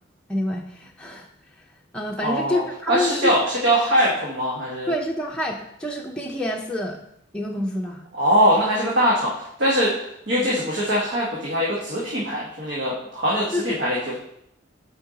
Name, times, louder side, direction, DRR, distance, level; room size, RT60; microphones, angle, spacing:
voice 1, 0.3-1.3 1.9-3.4 4.9-7.0 7.3-8.1 10.3-10.4 13.5-13.8, left 1 dB, 5° left, -1 dB, 0.6 m, -27 dB
voice 2, 2.2-2.6 2.9-4.9 8.1-9.9 10.3-14.2, equal, 75° right, -5 dB, 1.4 m, -22 dB
8.7 x 4.6 x 4.0 m, 0.75 s
head